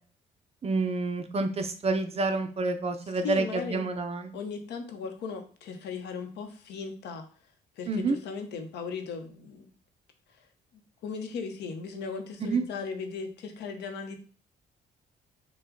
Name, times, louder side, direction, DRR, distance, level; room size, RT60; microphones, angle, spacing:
voice 1, 0.6-4.3 7.9-8.2 12.4-12.7, right 3 dB, 35° right, 7 dB, 0.6 m, -28 dB
voice 2, 3.2-3.9 4.3-7.3 7.8-9.7 11.0-14.2, left 5 dB, 85° left, 5 dB, 1.0 m, -37 dB
6.1 x 2.3 x 3.8 m, 0.40 s
cardioid pair, 105°, 17 cm